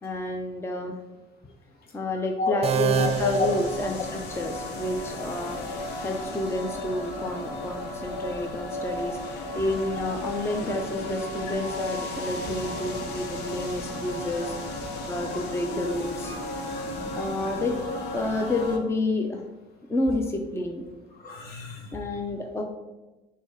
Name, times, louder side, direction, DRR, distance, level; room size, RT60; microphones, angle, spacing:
voice 1, 0.0-1.0 1.9-5.6 6.0-14.6 15.1-16.3 17.2-19.4 19.9-20.8 21.9-22.6, left 2 dB, 15° left, 3 dB, 0.6 m, -30 dB
sound 1, 2.6-4.5, right 7 dB, 40° right, 0.6 m, -27 dB
sound 2, 2.9-18.8, left 1 dB, 85° left, 1.0 m, -34 dB
voice 2, 16.2-17.3 21.2-21.9, left 4 dB, 65° left, 0 dB, 1.7 m, -31 dB
6.9 x 3.2 x 5.5 m, 1.1 s
cardioid pair, 110°, 17 cm